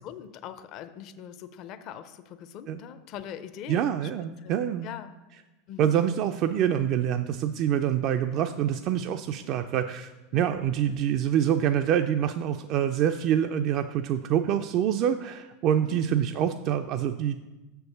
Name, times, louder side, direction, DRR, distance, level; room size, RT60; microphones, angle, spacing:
voice 1, 0.0-4.1 4.4-4.5 4.8-5.1 5.7-5.9 10.3-10.6 15.8-16.0, left 9 dB, 50° left, 11 dB, 0.5 m, -42 dB
voice 2, 3.7-4.9 5.8-17.5, right 9 dB, 50° right, 8 dB, 0.3 m, -26 dB
6.4 x 4.5 x 6.6 m, 1.1 s
hypercardioid pair, 100°, 0 cm